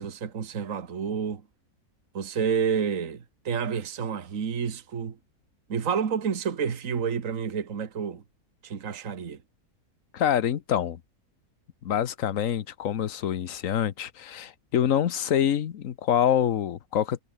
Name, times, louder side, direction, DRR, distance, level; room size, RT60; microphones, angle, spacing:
voice 1, 0.0-1.4 2.1-5.2 5.7-8.2 8.6-9.4, right 6 dB, 60° right, 2.0 m, -29 dB
voice 2, 10.1-11.0 11.8-17.2, left 9 dB, 60° left, 1.3 m, -26 dB
omnidirectional pair, 1.6 m